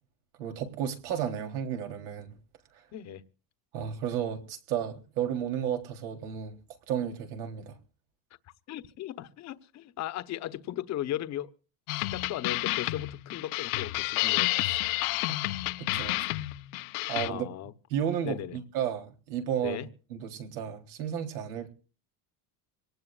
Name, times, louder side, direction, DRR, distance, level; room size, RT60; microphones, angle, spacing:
voice 1, 0.4-2.3 3.7-6.5 6.9-7.8 14.6-14.8 15.3-16.3 17.1-17.5 17.9-19.8 20.1-21.7, right 9 dB, 85° right, 3.6 m, -33 dB
voice 2, 2.9-3.2 8.7-11.5 11.9-14.5 17.2-17.7 18.2-18.6 19.6-19.9, left 12 dB, 40° left, 1.1 m, -37 dB
sound 1, 11.9-17.3, left 20 dB, 80° left, 1.0 m, -30 dB
25.5 x 18.5 x 2.5 m
cardioid pair, 150°, 43 cm